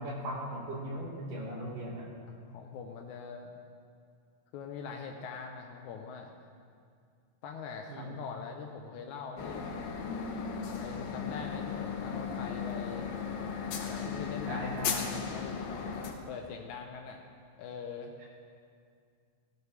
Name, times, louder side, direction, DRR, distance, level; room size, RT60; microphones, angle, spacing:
voice 1, 0.0-2.1 7.9-8.1 14.5-15.0, right 1 dB, 65° right, -3 dB, 3.4 m, -38 dB
voice 2, 2.3-3.5 4.5-6.3 7.4-9.7 10.7-13.1 13.8-15.5 16.3-17.2 17.6-18.1, left 5 dB, 90° left, 2 dB, 1.7 m, -43 dB
sound 1, 9.4-16.1, left 6 dB, 65° left, 1.8 m, -36 dB
16.5 x 13.5 x 3.4 m, 2.2 s
omnidirectional pair, 4.3 m